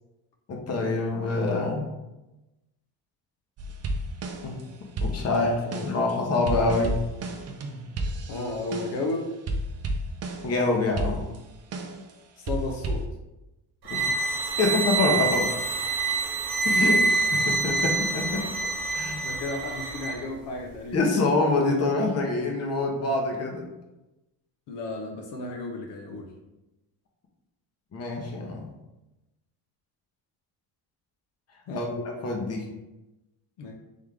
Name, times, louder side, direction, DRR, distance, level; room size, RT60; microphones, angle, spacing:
voice 1, 0.5-1.9 4.4-4.6 5.0-5.5 5.8-6.9 10.4-11.2 13.9-14.3 14.6-15.5 16.6-16.9 17.5-18.5 18.9-19.2 20.9-23.6 27.9-28.7 31.7-31.9 32.2-32.6, left 3 dB, 35° left, 1 dB, 0.8 m, -25 dB
sound 1, 3.6-4.6 5.0-9.1 9.5-10.6 11.0-12.1 12.5-13.1, right 1 dB, 35° right, 0.5 m, -32 dB
voice 2, 5.3-6.1 8.3-9.3 12.4-13.1 16.7-17.0 19.2-21.0 24.7-26.3 31.7-31.9 33.6-33.7, left 2 dB, 70° left, 1 dB, 0.8 m, -33 dB
sound 2, 13.8-20.2, right 3 dB, 60° right, 1.1 m, -26 dB
3.6 x 3.5 x 3.3 m, 1.0 s
cardioid pair, 130°, 44 cm